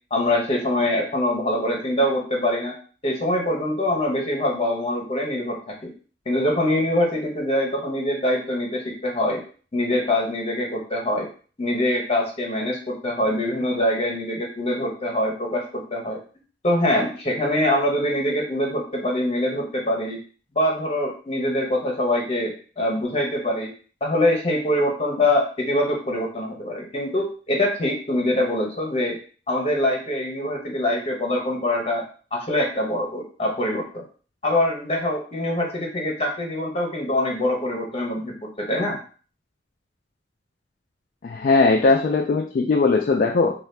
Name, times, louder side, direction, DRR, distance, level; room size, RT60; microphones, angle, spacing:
voice 1, 0.1-2.7 3.0-5.6 5.8-5.9 6.3-9.4 9.7-11.3 11.6-15.6 15.9-16.2 16.6-20.2 20.5-23.7 24.0-29.2 29.5-32.0 32.3-34.0 34.4-39.0, left 1 dB, 30° left, 0 dB, 0.8 m, -24 dB
voice 2, 41.2-43.5, left 3 dB, 50° left, 1 dB, 0.3 m, -19 dB
2.7 x 2.3 x 3.3 m, 0.40 s
head